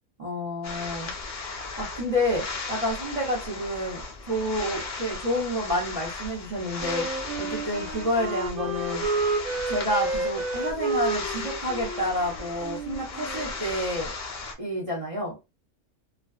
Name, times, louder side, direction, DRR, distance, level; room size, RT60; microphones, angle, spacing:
voice 1, 0.2-1.1 1.8-4.0 4.3-7.1 7.4-9.0 9.7-14.1 14.6-15.4, left 1 dB, 40° right, -4 dB, 0.5 m, -29 dB
sound 1, 0.6-14.5, left 3 dB, 75° left, 0.4 m, -36 dB
Wind instrument woodwind instrument, 6.8-13.6, right 3 dB, 75° right, 1.0 m, -31 dB
2.4 x 2.2 x 2.3 m, 0.24 s
omnidirectional pair, 1.6 m